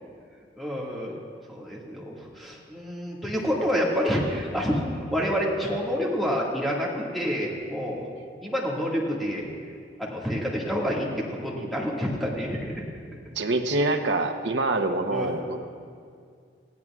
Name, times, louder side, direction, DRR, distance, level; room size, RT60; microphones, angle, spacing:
voice 1, 0.6-1.1 1.5-8.1 8.4-9.5 10.0-12.7 15.1-15.3, equal, ahead, -5 dB, 1.9 m, -28 dB
voice 2, 13.4-15.6, right 2 dB, 70° right, 5 dB, 0.8 m, -25 dB
20.0 x 15.0 x 2.4 m, 2.2 s
head